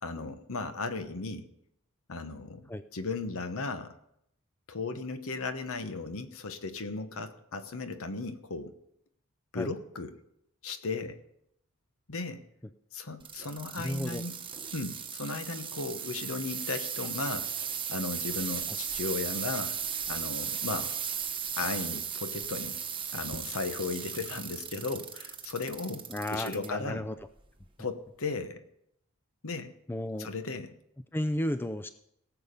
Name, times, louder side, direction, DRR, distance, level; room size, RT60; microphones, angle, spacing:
voice 1, 0.0-1.5 2.1-3.9 4.7-8.7 9.5-10.2 10.6-11.2 12.1-12.4 12.9-14.4 14.7-17.5 17.9-19.8 20.1-21.0 21.6-22.8 23.1-26.0 26.3-27.1 27.8-28.6 29.4-29.7 30.2-30.7, left 3 dB, 65° left, 9 dB, 1.1 m, -36 dB
sound 1, 13.2-26.7 27.2-27.7 28.3-28.4, right 7 dB, 25° right, 1.1 m, -36 dB
voice 2, 13.8-14.2 26.1-27.1 29.9-30.3 31.1-31.9, left 1 dB, 10° left, 11 dB, 0.4 m, -33 dB
18.0 x 7.1 x 5.2 m, 0.77 s
head